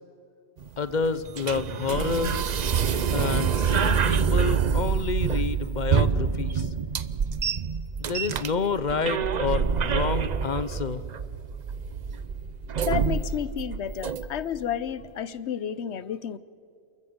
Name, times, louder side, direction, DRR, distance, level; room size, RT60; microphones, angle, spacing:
sound 1, 0.6-14.6, right 6 dB, 45° right, 0.7 m, -26 dB
voice 1, 0.8-2.4 3.1-6.7 8.0-11.0, left 5 dB, 45° left, 15 dB, 0.8 m, -29 dB
voice 2, 12.8-16.4, left 9 dB, 75° left, 17 dB, 1.0 m, -31 dB
28.5 x 14.0 x 8.0 m, 2.6 s
omnidirectional pair, 1.2 m